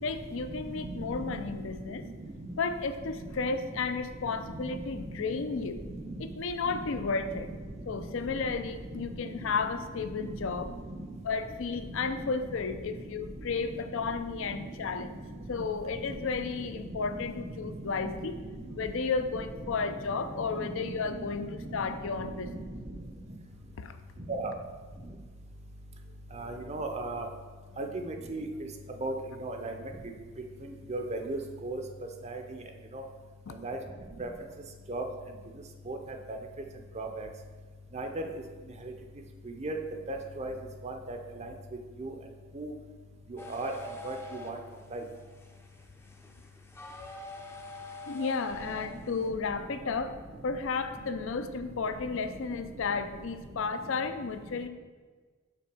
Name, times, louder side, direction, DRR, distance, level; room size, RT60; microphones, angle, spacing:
voice 1, 0.0-2.0 2.6-5.8 6.2-7.5 7.9-10.7 11.2-15.1 15.5-18.4 18.7-22.5 23.8-24.0 33.5-33.6 48.1-50.2 50.4-54.7, left 4 dB, 65° left, 9 dB, 0.5 m, -33 dB
voice 2, 20.6-21.3 22.4-22.6 24.3-24.5 26.4-27.3 27.8-28.4 29.0-29.1 29.4-29.7 30.9-31.8 32.2-32.4 32.9-33.0 33.6-33.8 34.2-34.3 34.9-35.0 35.9-36.0 37.0-37.3 37.9-38.1 39.6-39.8 40.1-40.5 40.8-41.5 42.0-42.1 42.6-42.7 43.5-43.7 44.0-44.1 44.4-44.6 44.9-45.0, right 2 dB, 30° right, 4 dB, 0.6 m, -35 dB
sound 1, 43.4-49.3, left 1 dB, 10° left, 0.5 m, -46 dB
5.9 x 4.3 x 6.0 m, 1.4 s
head